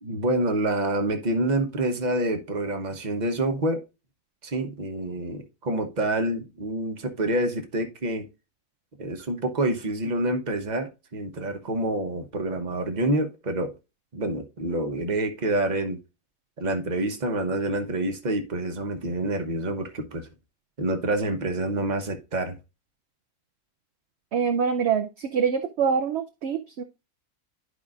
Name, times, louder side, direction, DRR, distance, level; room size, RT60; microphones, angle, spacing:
voice 1, 0.0-3.8 4.4-8.2 9.0-13.7 14.1-16.0 16.6-20.3 20.8-22.6, right 1 dB, 30° right, 1.0 m, -27 dB
voice 2, 24.3-26.8, right 6 dB, 60° right, 0.7 m, -25 dB
11.5 x 5.0 x 2.5 m
omnidirectional pair, 1.6 m